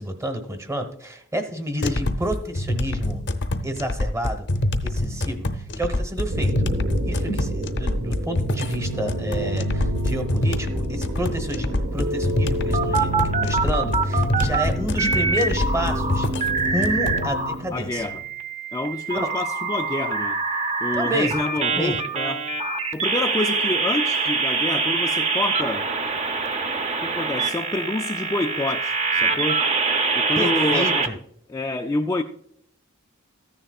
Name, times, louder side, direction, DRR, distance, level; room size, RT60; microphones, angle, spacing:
voice 1, 0.0-3.2 3.6-4.5 4.8-6.7 7.1-18.0 19.2-19.3 20.9-21.4 21.6-22.0 30.4-31.1, equal, 15° right, 1.1 m, -29 dB
sound 1, 1.8-17.2, left 1 dB, 55° left, 0.7 m, -26 dB
sound 2, 6.3-18.3, right 1 dB, 55° right, 0.9 m, -30 dB
sound 3, 12.0-14.6 15.0-17.5 17.9-31.1, right 4 dB, 30° right, 0.8 m, -25 dB
voice 2, 17.7-18.2 18.7-20.4 20.8-22.5 22.9-25.9 27.0-29.7 30.1-31.1 31.5-32.2, left 2 dB, 15° left, 0.3 m, -27 dB
14.0 x 9.9 x 2.4 m
head